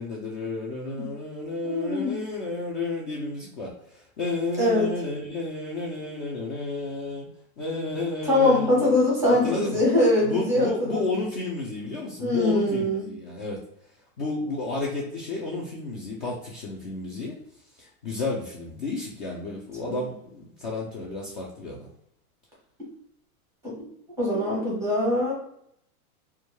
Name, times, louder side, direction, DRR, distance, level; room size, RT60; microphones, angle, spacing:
voice 1, 0.0-7.3 7.6-8.9 9.3-9.8 10.2-13.6 14.2-17.4 17.8-21.9, left 3 dB, 35° left, -4 dB, 0.4 m, -32 dB
voice 2, 1.6-2.2 4.6-4.9 8.2-11.0 12.2-13.1 19.8-19.9 23.6-23.8 24.2-25.3, left 1 dB, 5° right, -6 dB, 0.6 m, -22 dB
2.2 x 2.1 x 2.9 m, 0.73 s
supercardioid pair, 150°, 44 cm